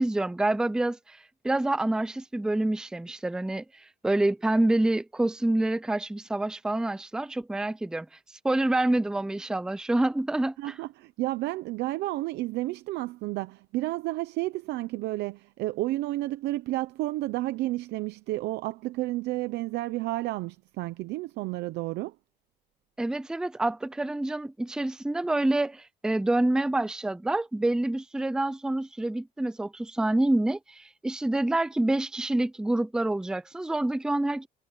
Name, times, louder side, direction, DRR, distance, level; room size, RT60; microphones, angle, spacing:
voice 1, 0.0-8.1 8.4-10.7 23.0-34.5, right 1 dB, 5° right, 0.5 m, -27 dB
voice 2, 10.6-22.1, right 17 dB, 85° right, 0.8 m, -31 dB
cardioid pair, 110°, 17 cm